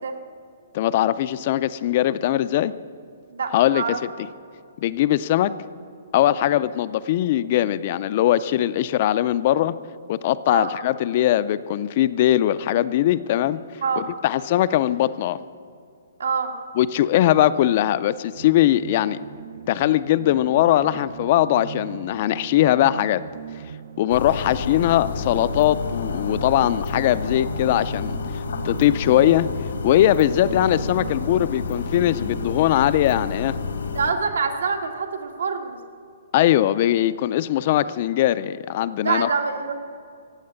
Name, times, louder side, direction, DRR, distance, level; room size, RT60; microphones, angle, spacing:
voice 1, 0.7-2.7 3.5-3.8 4.8-5.5 6.1-9.7 10.1-15.4 16.8-19.2 19.7-23.2 24.0-28.2 28.6-29.5 29.8-33.6 36.3-39.3, left 13 dB, 30° left, 15 dB, 0.3 m, -20 dB
voice 2, 3.3-4.0 6.4-6.5 10.5-10.7 13.8-14.1 16.2-16.5 22.5-22.7 33.9-35.8 39.0-39.7, right 5 dB, 85° right, 5 dB, 1.8 m, -26 dB
sound 1, 18.3-32.7, right 9 dB, 45° right, 0.4 m, -39 dB
sound 2, 24.1-34.1, left 5 dB, 90° left, 1.7 m, -30 dB
15.5 x 8.5 x 9.6 m, 2.3 s
hypercardioid pair, 180°, 0 cm